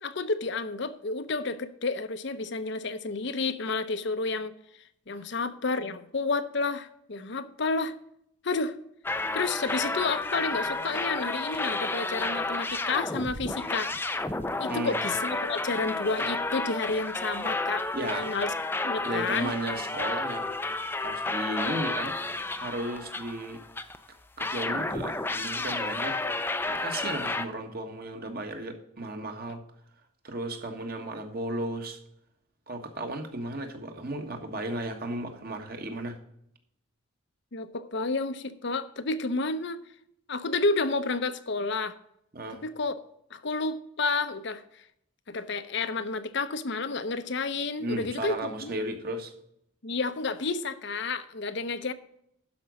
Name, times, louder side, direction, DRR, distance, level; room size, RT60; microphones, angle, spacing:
voice 1, 0.0-4.5 5.1-7.9 8.4-8.7 9.3-13.9 14.6-18.5 18.8-19.5 37.5-39.8 40.3-41.9 42.6-43.0 43.3-44.6 45.3-48.7 49.8-51.9, left 3 dB, 55° left, 11 dB, 0.7 m, -30 dB
sound 1, 9.0-24.0 24.4-27.5, left 2 dB, 10° left, 0.4 m, -31 dB
voice 2, 17.9-18.3 19.0-20.4 21.0-23.6 24.4-26.2 26.7-29.6 30.2-32.0 32.7-36.2 42.3-42.6 47.8-49.3, right 1 dB, 45° right, 5 dB, 1.5 m, -35 dB
12.0 x 5.2 x 6.1 m, 0.74 s
head